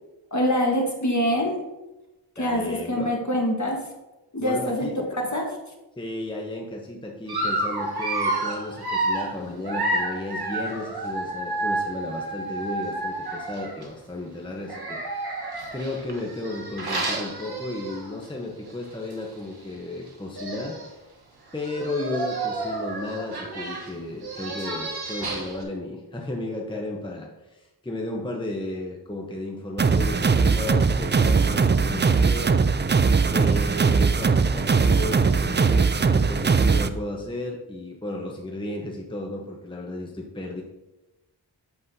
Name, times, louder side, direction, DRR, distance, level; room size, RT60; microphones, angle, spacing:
voice 1, 0.3-1.6 2.4-3.8 4.3-5.5, equal, 40° left, 1 dB, 1.7 m, -24 dB
voice 2, 2.4-3.2 4.4-4.9 6.0-20.8 21.5-32.6 33.3-40.6, left 2 dB, 10° left, -1 dB, 0.9 m, -34 dB
Dog, 7.3-13.9 14.6-18.2 18.7-18.8 19.1-19.2 20.1-20.2 20.3-20.9 21.5-25.6, right 2 dB, 60° right, 1.3 m, -30 dB
sound 1, 29.8-36.9, right 4 dB, 25° right, 0.4 m, -20 dB
8.2 x 7.1 x 2.8 m, 1.0 s
wide cardioid pair, 50°, 43 cm